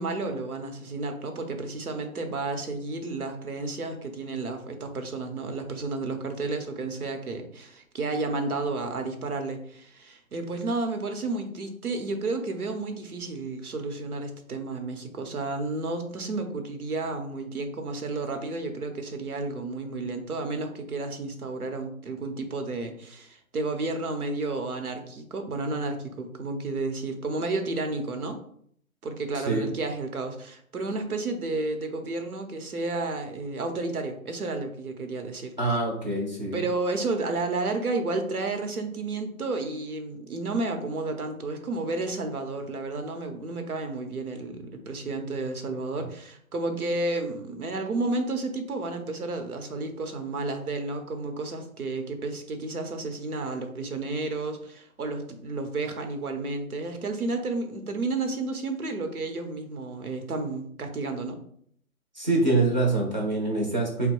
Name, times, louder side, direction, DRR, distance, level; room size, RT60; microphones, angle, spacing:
voice 1, 0.0-28.4 29.0-35.5 36.5-61.4, right 3 dB, 85° right, 5 dB, 1.0 m, -31 dB
voice 2, 29.3-29.7 35.6-36.6 62.1-64.1, right 2 dB, 30° right, -1 dB, 0.7 m, -25 dB
3.7 x 2.2 x 4.4 m, 0.63 s
hypercardioid pair, 160°, 43 cm